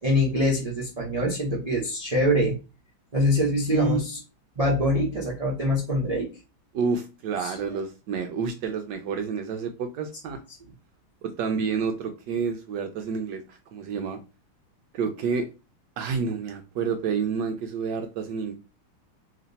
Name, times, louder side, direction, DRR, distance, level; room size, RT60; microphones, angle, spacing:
voice 1, 0.0-2.6 3.1-4.2 4.6-6.3 7.4-7.6, equal, 35° right, -3 dB, 0.5 m, -24 dB
voice 2, 3.7-4.0 6.7-10.4 11.2-14.2 14.9-15.5 16.0-18.5, right 5 dB, 70° right, 5 dB, 1.1 m, -29 dB
3.1 x 2.9 x 3.9 m, 0.29 s
omnidirectional pair, 2.2 m